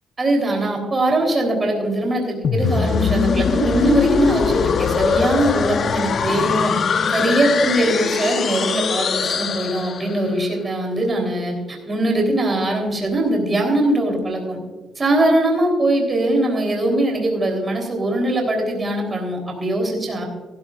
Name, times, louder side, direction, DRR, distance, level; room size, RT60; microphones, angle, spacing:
voice 1, 0.2-6.7 7.1-14.6 15.0-20.2, right 1 dB, 30° right, 1 dB, 3.6 m, -21 dB
sound 1, 2.4-10.3, left 6 dB, 55° left, 0.8 m, -21 dB
15.5 x 14.0 x 2.5 m, 1.3 s
cardioid pair, 90°, 0 cm